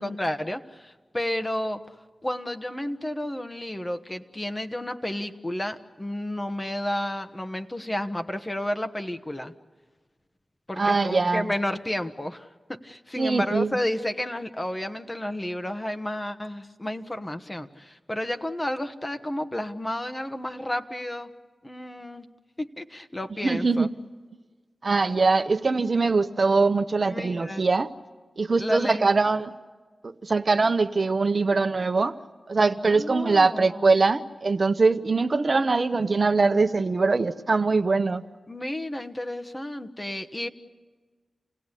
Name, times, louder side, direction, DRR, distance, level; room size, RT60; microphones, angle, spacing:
voice 1, 0.0-1.9 2.2-9.5 10.7-21.3 21.6-22.3 22.6-23.9 27.0-27.7 28.6-29.1 32.9-34.0 38.5-40.5, left 1 dB, 25° left, 8 dB, 1.4 m, -31 dB
voice 2, 10.8-11.5 13.2-13.8 23.4-23.9 24.8-27.9 28.4-29.5 30.0-32.2 32.5-38.2, right 3 dB, 55° right, 9 dB, 0.9 m, -22 dB
28.5 x 17.5 x 9.9 m, 1.4 s
cardioid pair, 45°, 0 cm